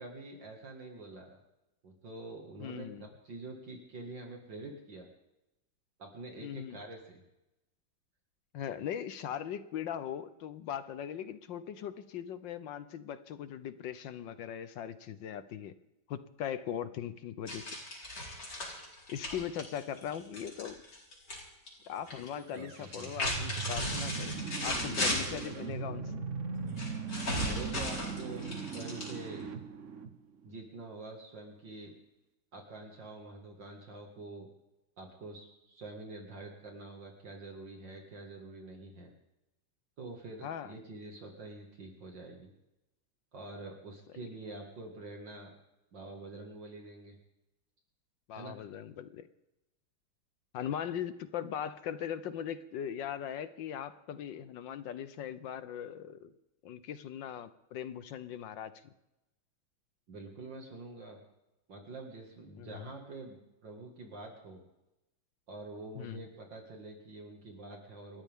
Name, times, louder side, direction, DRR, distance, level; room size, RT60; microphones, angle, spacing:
voice 1, 0.0-1.4 1.8-5.1 6.0-7.2 19.2-19.8 22.3-23.1 27.3-29.5 30.4-31.9 32.5-34.5 35.0-39.1 40.0-42.5 43.3-45.5 45.9-47.2 48.4-48.6 60.1-61.2 61.7-64.6 65.5-68.2, right 2 dB, 60° right, 1 dB, 2.7 m, -46 dB
voice 2, 2.6-3.1 6.4-6.8 8.5-15.7 16.1-17.7 19.1-20.8 21.9-24.3 24.6-26.1 40.4-40.7 44.2-44.3 48.3-49.3 50.5-56.3 56.6-58.9 62.6-62.9 66.0-66.2, left 9 dB, 70° left, 13 dB, 1.4 m, -40 dB
sound 1, 17.5-21.4 21.7-22.3 22.8-25.5 26.8-29.4, left 1 dB, 55° left, 5.1 m, -36 dB
sound 2, 22.4-30.6, right 5 dB, 45° right, 1.1 m, -39 dB
28.5 x 12.5 x 3.7 m, 0.94 s
omnidirectional pair, 2.3 m